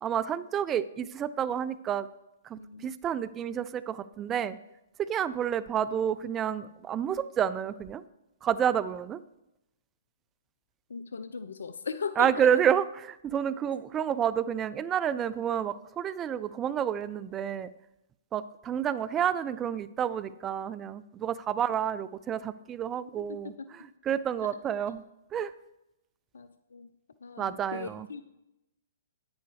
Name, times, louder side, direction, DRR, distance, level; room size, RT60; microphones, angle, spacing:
voice 1, 0.0-2.1 2.5-4.6 5.1-8.0 8.4-9.2 12.2-17.7 18.3-25.0 25.3-25.5 27.4-28.1, right 9 dB, 20° right, 16 dB, 0.3 m, -29 dB
voice 2, 2.6-2.9 10.9-12.3 26.3-26.5 26.7-26.9 27.2-28.2, left 5 dB, 70° left, 12 dB, 0.5 m, -37 dB
10.0 x 9.2 x 3.3 m, 0.91 s
figure-of-eight pair, 120°, 0 cm